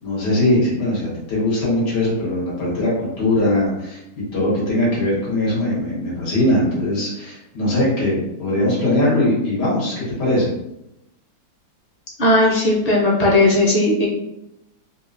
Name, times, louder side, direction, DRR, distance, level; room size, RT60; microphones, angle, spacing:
voice 1, 0.0-4.0 4.3-10.5, left 1 dB, 80° left, -7 dB, 2.1 m, -20 dB
voice 2, 12.2-14.1, left 2 dB, 40° left, -4 dB, 0.5 m, -16 dB
4.0 x 2.5 x 2.5 m, 0.87 s
omnidirectional pair, 1.8 m